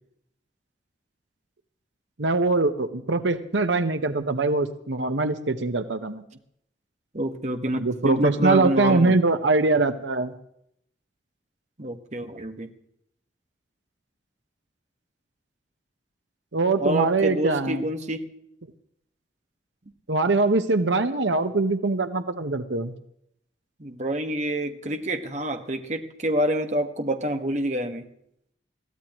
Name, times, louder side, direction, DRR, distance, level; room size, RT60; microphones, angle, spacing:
voice 1, 2.2-6.2 7.8-10.3 16.5-17.8 20.1-22.9, right 3 dB, 85° right, 9 dB, 1.1 m, -23 dB
voice 2, 7.1-9.2 11.8-12.7 16.8-18.3 23.8-28.1, right 1 dB, 40° right, 5 dB, 1.5 m, -27 dB
22.0 x 15.5 x 3.1 m, 0.72 s
head